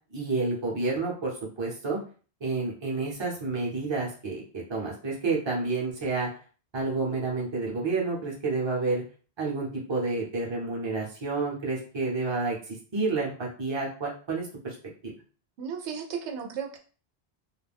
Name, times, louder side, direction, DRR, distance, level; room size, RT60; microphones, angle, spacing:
voice 1, 0.1-2.0 2.4-6.3 6.7-9.0 9.4-14.8, right 3 dB, 30° right, -3 dB, 0.7 m, -30 dB
voice 2, 15.6-16.8, right 7 dB, 85° right, 2 dB, 0.9 m, -34 dB
2.4 x 2.1 x 3.4 m, 0.39 s
omnidirectional pair, 1.1 m